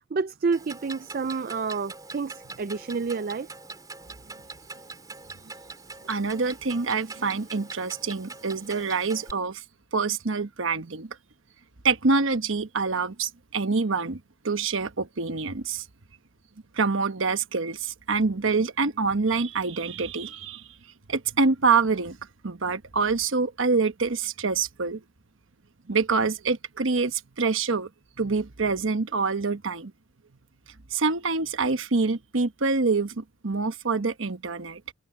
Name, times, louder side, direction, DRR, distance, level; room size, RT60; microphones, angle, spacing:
voice 1, 0.1-3.5 5.6-5.7, right 4 dB, 45° right, 0.4 m, -29 dB
Clock, 0.5-9.3, right 3 dB, 20° right, 4.3 m, -43 dB
voice 2, 6.1-9.6 9.9-11.2 11.8-14.2 14.4-15.8 16.7-20.6 21.1-22.2 22.4-25.0 25.9-27.9 28.2-29.9 30.9-34.8, right 4 dB, 70° right, 1.1 m, -26 dB
head